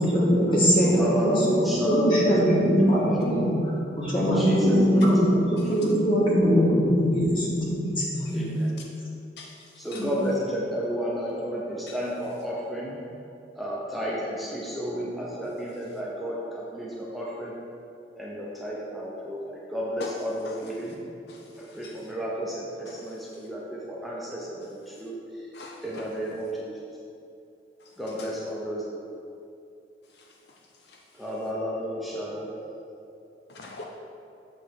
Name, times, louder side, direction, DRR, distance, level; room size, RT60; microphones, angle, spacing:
voice 1, 0.0-3.5 4.0-8.5 10.0-10.1, equal, 25° left, -6 dB, 1.7 m, -22 dB
voice 2, 0.8-3.5 4.1-5.1 5.6-5.7 8.3-8.7 9.8-13.0 13.5-17.5 18.2-21.0 21.6-25.2 25.8-26.7 28.0-29.0 31.2-32.6, equal, ahead, -6 dB, 0.8 m, -31 dB
voice 3, 9.4-10.0 11.9-12.0 20.0-20.1 20.4-20.6 21.3-22.0 22.9-23.0 25.5-26.1 27.8-27.9 28.2-28.3 30.2-30.3 30.9-31.0 33.5-33.8, left 3 dB, 60° left, 0 dB, 0.5 m, -43 dB
8.1 x 3.4 x 6.4 m, 2.6 s
head